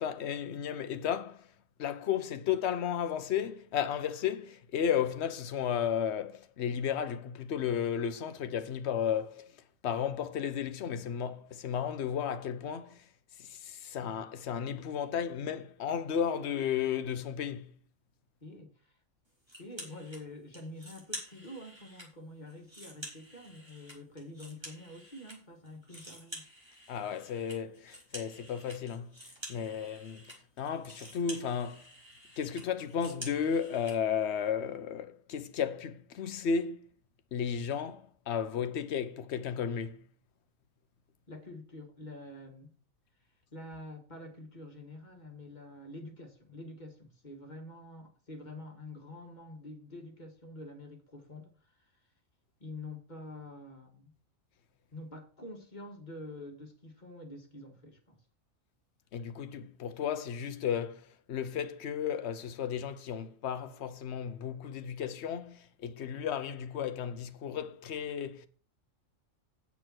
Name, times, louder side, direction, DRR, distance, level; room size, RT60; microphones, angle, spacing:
voice 1, 0.0-1.5 1.8-9.5 9.8-13.0 13.4-17.7 26.9-29.1 29.5-30.3 30.6-31.8 32.4-36.8 37.3-40.0 59.1-68.5, left 8 dB, 60° left, 1.0 m, -34 dB
voice 2, 18.4-19.0 19.6-26.4 41.3-42.7 43.5-51.9 52.6-54.1 54.9-58.2, left 1 dB, 35° left, 1.8 m, -47 dB
sound 1, 19.5-20.2 20.5-22.1 22.5-25.4 25.6-34.0, equal, 20° right, 3.2 m, -48 dB
8.5 x 6.6 x 6.1 m
omnidirectional pair, 1.4 m